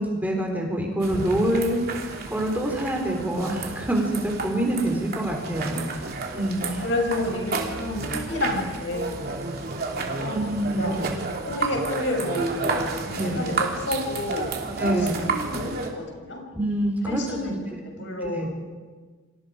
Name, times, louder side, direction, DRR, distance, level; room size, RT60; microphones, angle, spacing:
voice 1, 0.0-1.8 2.3-6.0 6.3-6.8 10.3-11.0 13.1-13.4 14.8-15.1 16.5-17.5 18.2-18.5, right 1 dB, 10° right, 0 dB, 4.1 m, -26 dB
sound 1, 1.0-15.9, right 3 dB, 50° right, 3.1 m, -31 dB
voice 2, 6.6-9.4 10.2-10.4 10.7-10.9 11.5-14.5 14.8-16.4 17.1-18.6, left 1 dB, 65° left, 2 dB, 6.1 m, -30 dB
30.0 x 26.5 x 5.1 m, 1.4 s
head